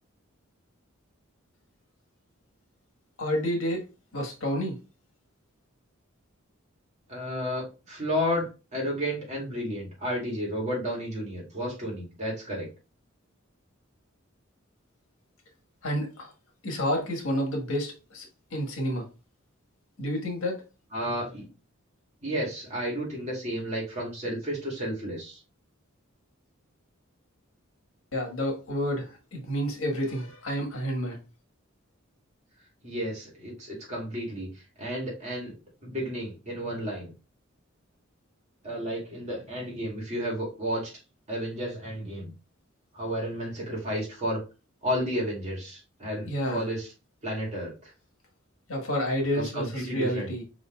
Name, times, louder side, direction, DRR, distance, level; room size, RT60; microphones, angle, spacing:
voice 1, 3.2-3.8 4.1-4.8 15.8-16.3 16.6-18.3 18.5-19.0 20.0-20.6 28.1-31.2 46.3-46.6 48.7-50.4, equal, 80° left, 1.5 m, -29 dB
voice 2, 7.1-12.7 20.9-21.5 22.2-25.4 32.8-34.5 34.8-35.5 35.8-37.1 38.6-40.9 41.3-42.3 42.9-44.4 44.8-46.9 47.2-47.7 49.3-50.3, equal, 35° right, 2.2 m, -32 dB
5.0 x 3.8 x 2.3 m
head